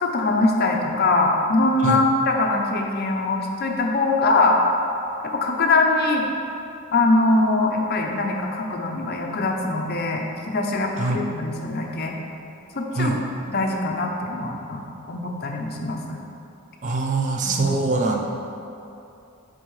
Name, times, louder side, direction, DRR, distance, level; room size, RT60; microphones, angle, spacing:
voice 1, 0.0-4.6 5.3-6.2 6.9-12.1 12.7-13.1 13.5-14.8 15.1-16.2 17.4-17.8, left 2 dB, 45° left, 1 dB, 0.5 m, -22 dB
voice 2, 16.8-18.3, right 3 dB, 35° right, 1 dB, 0.4 m, -23 dB
7.9 x 3.9 x 3.2 m, 2.7 s
head